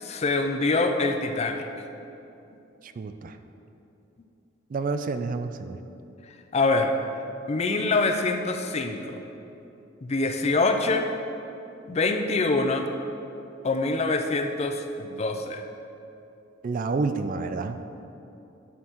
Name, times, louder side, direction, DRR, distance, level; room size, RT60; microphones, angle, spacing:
voice 1, 0.0-1.6 6.5-6.9 7.5-9.2 10.0-11.1 11.9-12.9 13.6-15.6, left 3 dB, 35° left, 6 dB, 0.4 m, -25 dB
voice 2, 2.8-3.4 4.7-5.8 16.6-17.8, right 4 dB, 45° right, 9 dB, 0.3 m, -29 dB
11.0 x 6.4 x 3.0 m, 2.9 s
head